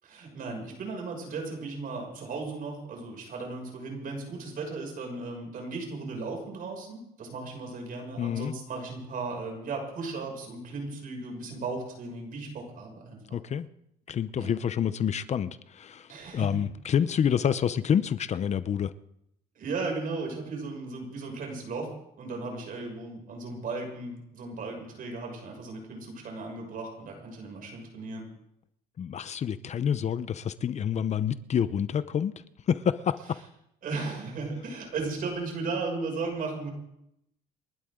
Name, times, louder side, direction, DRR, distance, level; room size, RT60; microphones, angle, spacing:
voice 1, 0.0-13.4 14.4-14.5 16.1-16.6 19.5-21.9 22.2-28.3 33.8-36.7, right 3 dB, 55° right, 2 dB, 6.5 m, -36 dB
voice 2, 8.2-8.5 13.3-13.7 14.1-18.9 29.0-33.4, left 8 dB, 45° left, 14 dB, 0.8 m, -28 dB
29.0 x 11.5 x 3.8 m, 0.79 s
cardioid pair, 110°, 17 cm